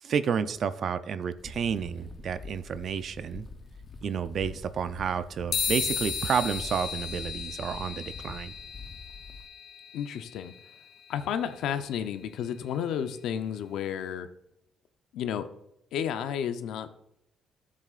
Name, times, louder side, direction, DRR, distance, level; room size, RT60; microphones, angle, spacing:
voice 1, 0.0-3.5 4.0-8.5, right 7 dB, 60° right, 12 dB, 0.5 m, -30 dB
sound 1, 1.4-9.5, left 4 dB, 40° left, 0.8 m, -45 dB
sound 2, 5.5-13.2, left 6 dB, 65° left, 1.0 m, -36 dB
voice 2, 9.9-10.5 11.1-14.3 15.1-15.5 15.9-16.9, left 8 dB, 85° left, 9 dB, 0.7 m, -32 dB
13.5 x 7.5 x 2.5 m, 0.81 s
cardioid pair, 90°, 0 cm